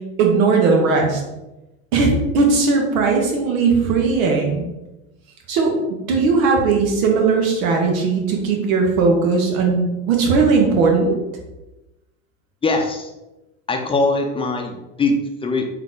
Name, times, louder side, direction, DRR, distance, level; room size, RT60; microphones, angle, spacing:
voice 1, 0.2-1.2 1.9-4.6 5.5-11.1, right 4 dB, 75° right, 1 dB, 1.3 m, -18 dB
voice 2, 12.6-13.1 13.7-15.6, left 3 dB, 15° left, 3 dB, 0.6 m, -21 dB
3.8 x 3.1 x 3.7 m, 0.99 s
supercardioid pair, 100°, 41 cm